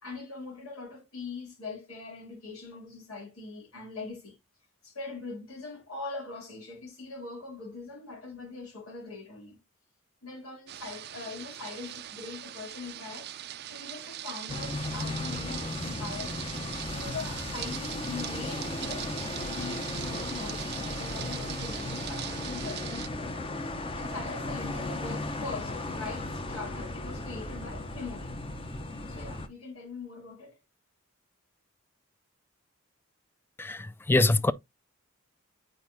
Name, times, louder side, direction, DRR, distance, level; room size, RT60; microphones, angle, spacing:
voice 1, 0.0-4.4 4.8-9.6 10.2-13.3 13.7-16.4 16.9-19.1 19.4-23.4 23.7-28.4 29.1-30.6, left 3 dB, 80° left, 3.2 m, -42 dB
sound 1, 10.7-23.1, right 12 dB, 50° right, 0.5 m, -41 dB
sound 2, 14.5-29.5, left 2 dB, 25° left, 0.8 m, -36 dB
voice 2, 33.6-34.5, left 2 dB, 10° left, 0.3 m, -24 dB
9.0 x 4.6 x 2.7 m
head